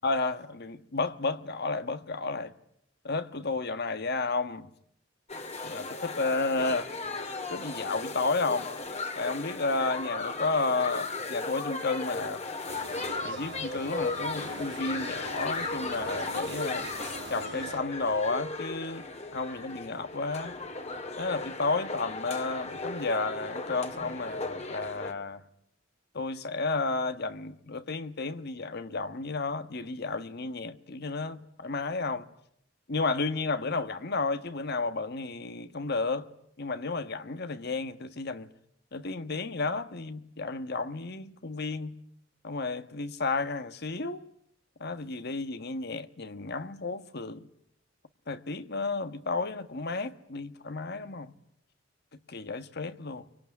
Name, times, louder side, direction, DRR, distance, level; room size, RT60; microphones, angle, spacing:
voice 1, 0.0-2.5 3.0-4.7 5.6-6.9 7.5-8.7 9.1-12.4 13.2-16.9 17.3-20.6 21.2-25.4 26.1-32.3 32.9-36.3 36.6-38.5 38.9-41.9 42.4-44.2 44.8-47.5 48.3-51.3 52.3-53.3, left 3 dB, 55° left, 1.4 m, -32 dB
sound 1, 5.3-25.1, left 3 dB, 35° left, 2.2 m, -36 dB
sound 2, 12.7-17.8, right 4 dB, 60° right, 1.6 m, -43 dB
25.0 x 24.5 x 9.6 m
head